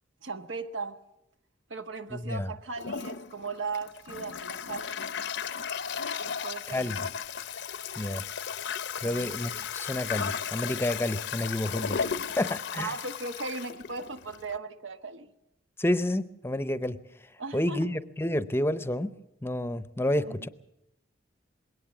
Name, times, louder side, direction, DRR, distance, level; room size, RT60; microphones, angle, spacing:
voice 1, 0.2-1.0 1.7-5.2 6.2-7.0 9.0-9.3 12.7-15.3 17.4-17.9 20.1-20.4, right 4 dB, 90° right, 1.3 m, -38 dB
voice 2, 2.1-2.5 6.7-7.0 8.0-8.2 9.0-12.0 12.4-12.9 15.8-17.0 17.5-19.1 19.4-20.5, left 1 dB, 15° left, 0.7 m, -29 dB
Toilet flush, 2.8-14.6, left 7 dB, 65° left, 0.7 m, -35 dB
21.5 x 18.0 x 7.1 m
head